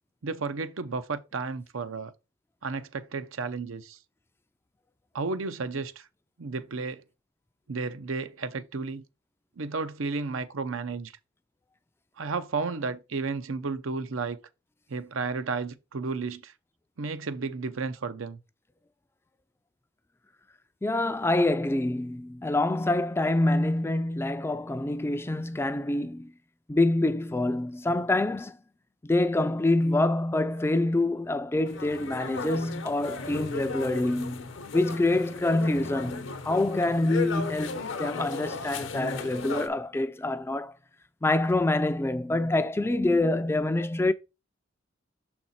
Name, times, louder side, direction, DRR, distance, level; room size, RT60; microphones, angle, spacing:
voice 1, 0.2-2.1 2.6-4.0 5.1-6.0 6.4-7.0 7.7-9.0 9.6-11.1 12.2-14.4 14.9-16.5 17.0-18.4, right 4 dB, 85° right, 0.6 m, -32 dB
voice 2, 20.8-26.3 26.7-28.6 29.0-34.5 34.7-40.8 41.2-44.1, left 2 dB, 10° left, 0.3 m, -26 dB
sound 1, 31.7-39.7, left 4 dB, 65° left, 0.8 m, -36 dB
6.4 x 4.3 x 4.2 m
head